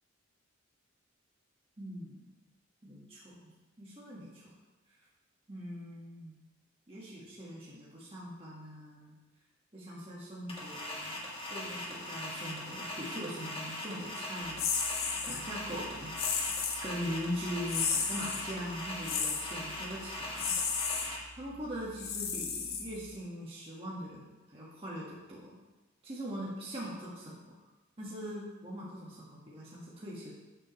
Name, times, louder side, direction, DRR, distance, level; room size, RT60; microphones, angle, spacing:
voice 1, 1.8-2.3 2.8-3.5 3.8-4.5 5.5-6.3 6.9-9.1 9.7-11.2 11.5-14.7 15.3-16.1 16.8-20.6 21.3-25.6 26.0-27.3 28.0-30.3, equal, 30° right, -6 dB, 1.7 m, -41 dB
sound 1, 10.5-21.2, left 1 dB, 25° left, 1.5 m, -40 dB
sound 2, 14.6-15.4 16.2-16.8 17.7-18.4 19.0-19.5 20.4-21.1 22.0-23.1, left 6 dB, 90° left, 1.3 m, -33 dB
12.0 x 7.6 x 3.2 m, 1.1 s
head